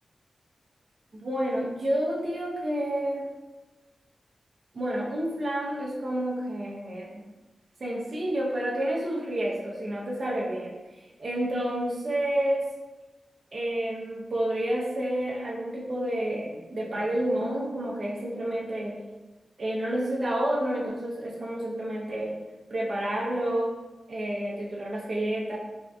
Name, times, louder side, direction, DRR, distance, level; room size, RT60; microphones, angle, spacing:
voice 1, 1.1-3.3 4.7-7.2 7.8-12.7 13.5-19.0 19.6-22.3 22.7-23.7 24.1-25.6, right 1 dB, 55° right, -3 dB, 0.7 m, -29 dB
3.5 x 2.3 x 2.7 m, 1.1 s
wide cardioid pair, 110°, 0 cm